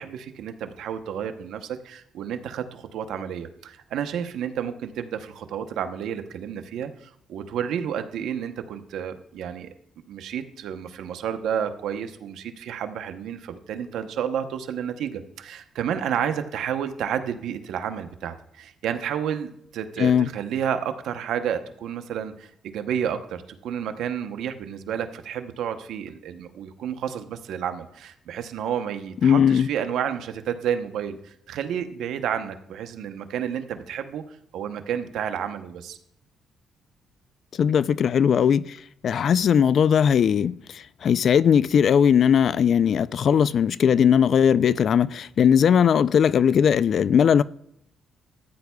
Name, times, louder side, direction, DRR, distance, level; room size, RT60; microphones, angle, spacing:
voice 1, 0.0-9.7 10.1-36.0, right 8 dB, 80° right, 0.8 m, -31 dB
voice 2, 29.2-29.7 37.6-38.6 39.0-40.5 41.0-47.4, left 8 dB, 60° left, 0.3 m, -19 dB
14.5 x 9.5 x 2.3 m
cardioid pair, 90°, 0 cm